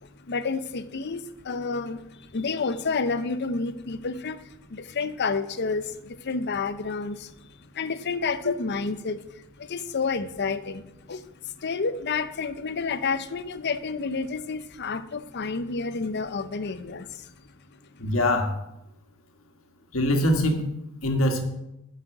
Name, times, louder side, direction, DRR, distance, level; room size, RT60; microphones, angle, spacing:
voice 1, 0.0-7.5 7.7-17.3, left 4 dB, 55° left, 12 dB, 0.6 m, -30 dB
voice 2, 18.0-18.5 19.9-20.7 21.0-21.4, left 1 dB, 75° left, 5 dB, 1.6 m, -23 dB
9.8 x 5.7 x 7.8 m, 0.86 s
head